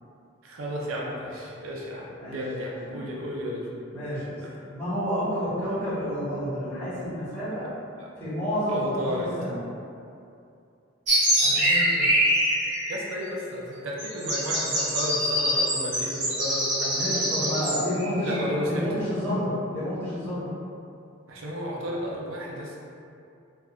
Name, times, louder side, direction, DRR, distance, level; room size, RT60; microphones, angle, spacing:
voice 1, 0.4-3.7 8.0-8.1 8.7-9.3 12.9-17.7 18.2-18.9 21.3-22.8, equal, 85° right, -3 dB, 0.5 m, -33 dB
voice 2, 3.9-4.4 4.7-7.7 8.2-9.6 11.4-12.1 16.9-18.4 18.6-20.5, equal, 10° left, -15 dB, 1.3 m, -30 dB
sound 1, 11.1-13.0 14.0-18.4, equal, 60° right, 1.1 m, -24 dB
3.4 x 2.4 x 2.4 m, 2.6 s
head